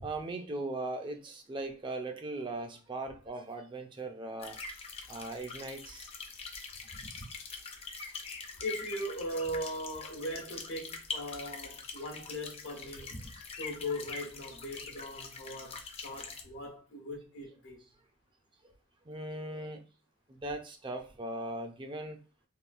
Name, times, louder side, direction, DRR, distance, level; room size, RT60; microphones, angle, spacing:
voice 1, 0.0-4.6 5.1-6.1 19.1-19.8 20.3-22.2, right 2 dB, 25° right, 0.4 m, -39 dB
sound 1, 4.4-16.4, left 4 dB, 30° left, 0.5 m, -44 dB
voice 2, 6.9-7.3 8.6-13.3 13.6-17.8, equal, 75° left, 1.0 m, -39 dB
3.5 x 2.4 x 2.4 m
head